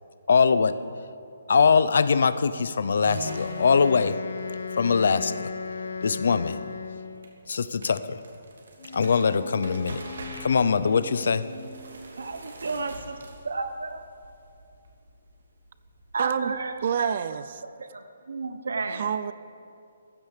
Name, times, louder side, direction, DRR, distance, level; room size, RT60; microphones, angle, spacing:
voice 1, 0.3-0.8 1.5-4.2 4.8-5.5 6.0-6.6 7.5-8.2 8.9-10.0 10.4-11.4, left 5 dB, 55° left, 14 dB, 0.7 m, -22 dB
sound 1, 3.0-17.2, right 2 dB, 70° right, 3.2 m, -45 dB
Wind instrument woodwind instrument, 3.2-7.4, left 5 dB, 70° left, 1.1 m, -35 dB
sound 2, 8.8-12.5, left 2 dB, 30° left, 1.7 m, -43 dB
voice 2, 12.2-13.2 13.4-14.0 16.1-17.1 17.6-19.0, right 4 dB, 85° right, 8 dB, 1.0 m, -32 dB
voice 3, 16.2-16.5 16.8-17.6 18.9-19.3, right 8 dB, 35° right, 15 dB, 0.5 m, -28 dB
15.0 x 14.0 x 6.7 m, 2.5 s
hypercardioid pair, 180°, 0 cm